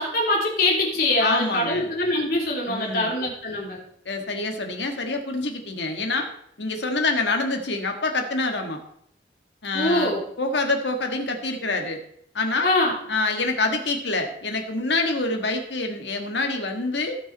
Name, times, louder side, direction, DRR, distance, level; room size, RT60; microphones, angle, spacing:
voice 1, 0.0-3.8 9.7-10.2 12.6-12.9, left 1 dB, 55° left, -3 dB, 3.2 m, -23 dB
voice 2, 1.2-1.9 2.6-3.1 4.0-6.3 6.6-8.8 9.6-12.0 12.3-12.7 13.1-17.2, left 3 dB, 85° left, 4 dB, 1.7 m, -26 dB
17.5 x 6.1 x 4.1 m, 0.68 s
head